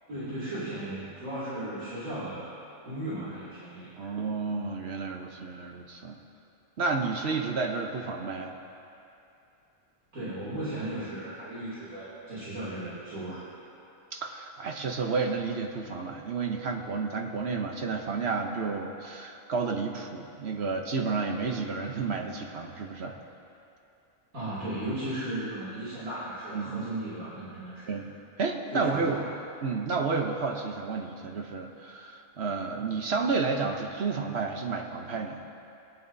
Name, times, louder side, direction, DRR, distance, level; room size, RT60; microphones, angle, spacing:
voice 1, 0.1-2.5 2.8-4.1 10.1-13.5 24.3-27.9 28.7-29.3, right 1 dB, 80° right, -11 dB, 3.3 m, -36 dB
voice 2, 4.0-6.2 6.8-8.5 14.1-23.2 26.5-26.9 27.9-28.0 28.4-29.2 29.6-35.4, right 4 dB, 55° right, 2 dB, 1.0 m, -31 dB
24.0 x 8.9 x 2.7 m, 2.8 s
omnidirectional pair, 1.4 m